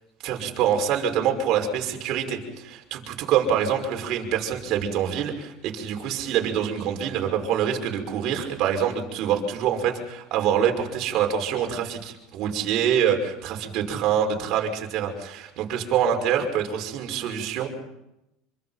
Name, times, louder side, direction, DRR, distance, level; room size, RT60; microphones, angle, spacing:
voice 1, 0.2-17.7, right 8 dB, 55° right, 3 dB, 5.7 m, -25 dB
27.0 x 24.5 x 5.8 m, 0.90 s
supercardioid pair, 130°, 0 cm